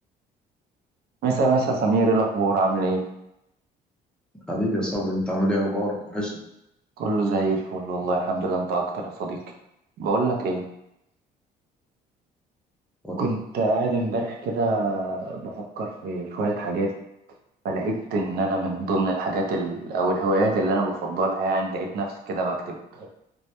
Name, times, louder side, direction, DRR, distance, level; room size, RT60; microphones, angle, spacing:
voice 1, 1.2-3.0 7.0-9.4 10.0-10.6 13.2-16.9 17.6-23.1, right 2 dB, 65° right, 1 dB, 0.5 m, -25 dB
voice 2, 4.5-6.4 13.0-13.2, equal, 5° left, -4 dB, 0.6 m, -26 dB
2.1 x 2.0 x 2.8 m, 0.83 s
cardioid pair, 110°, 17 cm